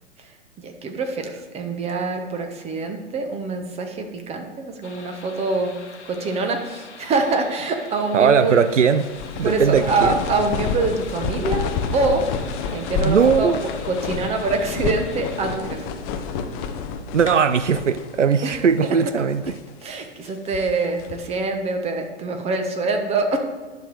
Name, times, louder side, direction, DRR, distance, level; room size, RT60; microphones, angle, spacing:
voice 1, 0.2-5.8 6.0-8.6 9.4-11.7 11.9-12.3 12.7-13.5 13.9-15.9 18.4-18.6 19.8-23.4, right 3 dB, 15° right, 4 dB, 1.1 m, -25 dB
sound 1, 4.8-15.6, left 5 dB, 75° left, 1.2 m, -43 dB
voice 2, 8.1-9.0 9.4-10.2 13.0-13.6 17.1-19.6, right 6 dB, 90° right, 12 dB, 0.5 m, -19 dB
sound 2, 8.7-18.2 18.5-18.6 19.2-19.7 20.3-21.4, left 6 dB, 30° left, 0.7 m, -29 dB
10.0 x 6.4 x 4.8 m, 1.3 s
figure-of-eight pair, 110°, 35 cm